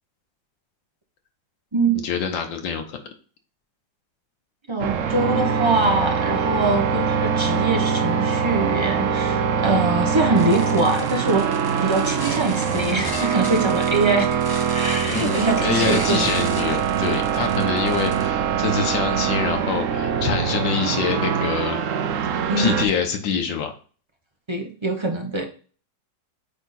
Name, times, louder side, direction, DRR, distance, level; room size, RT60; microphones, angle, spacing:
voice 1, 1.9-3.0 9.7-10.1 15.1-21.8 22.6-23.7, left 6 dB, 80° left, 5 dB, 1.6 m, -26 dB
voice 2, 4.7-11.5 11.8-14.4 14.7-16.3 22.5-22.8 24.5-25.4, right 3 dB, 25° right, 3 dB, 0.6 m, -23 dB
sound 1, 4.8-22.9, right 7 dB, 65° right, 0.8 m, -23 dB
sound 2, 10.4-18.3, left 1 dB, 40° left, 0.3 m, -35 dB
8.3 x 3.6 x 4.2 m, 0.39 s
omnidirectional pair, 2.0 m